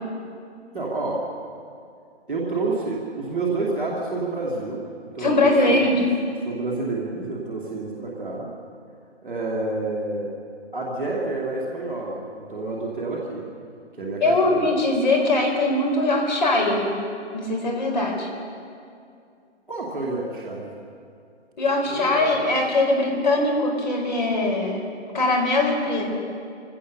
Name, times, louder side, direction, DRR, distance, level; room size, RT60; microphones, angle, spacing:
voice 1, 0.7-1.2 2.3-4.8 5.1-6.1 6.4-8.5 9.2-10.3 10.7-13.4 14.0-14.6 19.7-20.7 21.8-22.3, right 3 dB, ahead, -16 dB, 0.7 m, -29 dB
voice 2, 5.2-6.0 14.2-16.9 17.3-18.3 21.6-24.8 25.1-26.1, left 2 dB, 40° left, 1 dB, 4.3 m, -21 dB
24.0 x 16.5 x 6.7 m, 2.4 s
hypercardioid pair, 175°, 36 cm